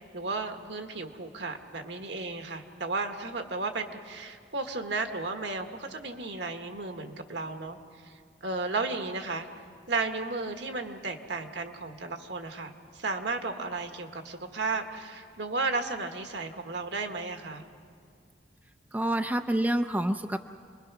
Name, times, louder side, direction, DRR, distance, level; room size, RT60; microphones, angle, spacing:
voice 1, 0.0-7.8 8.0-8.1 8.4-9.5 9.9-17.7, right 3 dB, 65° right, 5 dB, 1.6 m, -34 dB
voice 2, 18.9-20.4, right 1 dB, 10° right, 7 dB, 0.5 m, -27 dB
28.0 x 21.5 x 6.1 m, 2.3 s
head